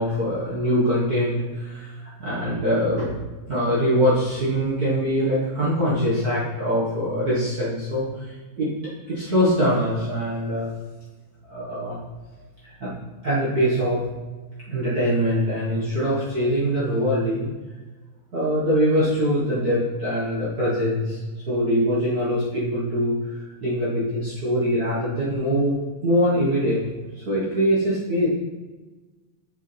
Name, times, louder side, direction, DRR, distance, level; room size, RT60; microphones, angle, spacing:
voice 1, 0.0-3.1 3.5-8.7 9.1-10.7 11.5-12.0 12.8-12.9 13.2-14.0 14.7-17.5 18.3-21.2 21.5-23.2 23.6-25.8 26.0-26.8 27.2-28.3, equal, 40° right, -9 dB, 1.5 m, -23 dB
7.1 x 6.6 x 3.4 m, 1.2 s
omnidirectional pair, 3.5 m